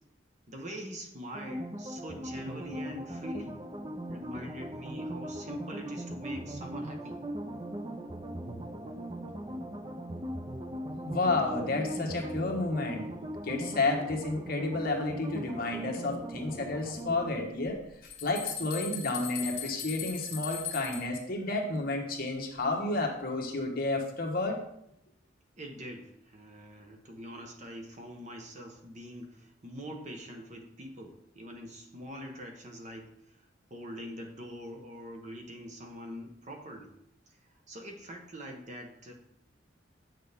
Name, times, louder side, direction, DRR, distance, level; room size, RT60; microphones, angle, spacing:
voice 1, 0.5-3.6 4.1-7.2 25.6-33.4 33.7-36.9 37.3-37.4 37.7-39.1, equal, 40° right, 3 dB, 1.1 m, -44 dB
sound 1, 1.3-17.3, right 1 dB, 25° right, 0.5 m, -39 dB
voice 2, 11.0-13.1 13.4-17.8 18.0-24.6, left 2 dB, 50° left, 1 dB, 1.3 m, -31 dB
sound 2, 17.7-21.2, left 8 dB, 30° left, 1.9 m, -39 dB
8.2 x 6.5 x 3.5 m, 0.77 s
head